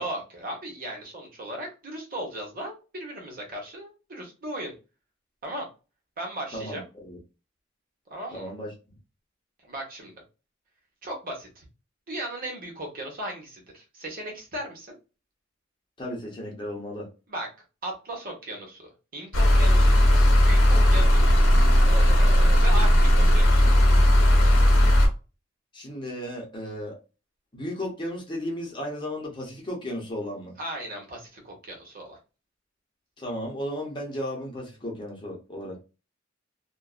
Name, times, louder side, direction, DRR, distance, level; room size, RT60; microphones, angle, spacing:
voice 1, 0.0-4.7 5.4-5.7 6.2-6.8 8.1-8.5 9.7-10.1 11.0-11.6 12.1-15.0 17.3-17.5 17.8-20.1 20.4-21.3 21.8-23.7 30.6-32.2, right 1 dB, 50° right, 1.0 m, -37 dB
voice 2, 6.5-7.2 8.3-8.7 16.0-17.1 25.7-27.0 27.5-30.5 33.2-35.8, equal, 25° left, 0.9 m, -34 dB
sound 1, 19.3-25.1, equal, 90° left, 0.9 m, -17 dB
2.5 x 2.2 x 2.3 m
head